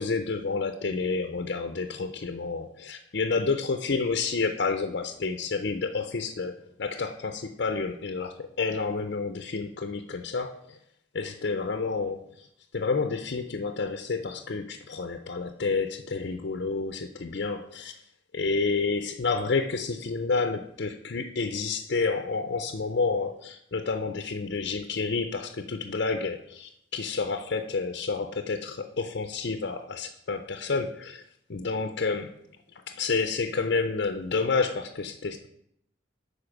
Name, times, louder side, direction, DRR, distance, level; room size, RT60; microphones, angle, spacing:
voice 1, 0.0-10.8 11.1-12.5 12.7-18.0 18.3-31.2 31.5-32.3 32.9-35.5, left 4 dB, 60° left, 6 dB, 0.5 m, -29 dB
10.0 x 4.2 x 6.0 m, 0.74 s
head